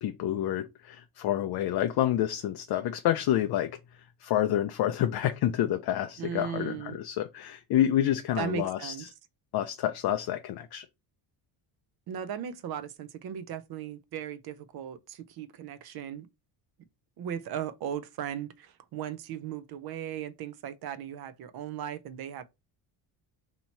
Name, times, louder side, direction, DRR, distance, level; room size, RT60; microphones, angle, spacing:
voice 1, 0.0-9.1 9.5-10.9, left 11 dB, 55° left, 0.5 m, -28 dB
voice 2, 6.2-7.0 8.4-9.1 12.1-16.3 17.2-22.4, right 9 dB, 50° right, 0.5 m, -37 dB
2.9 x 2.7 x 4.3 m
cardioid pair, 125°, 49 cm